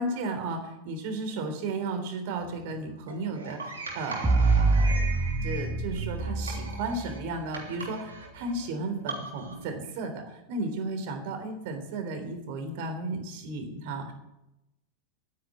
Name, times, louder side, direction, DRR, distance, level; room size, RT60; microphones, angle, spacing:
voice 1, 0.0-5.0 5.4-14.1, right 2 dB, 50° right, 6 dB, 3.6 m, -34 dB
sound 1, 2.4-9.6, right 3 dB, 75° right, 3.5 m, -40 dB
sound 2, 4.2-7.3, right 3 dB, 10° right, 2.1 m, -26 dB
12.0 x 10.0 x 9.6 m, 0.89 s
figure-of-eight pair, 90°, 0 cm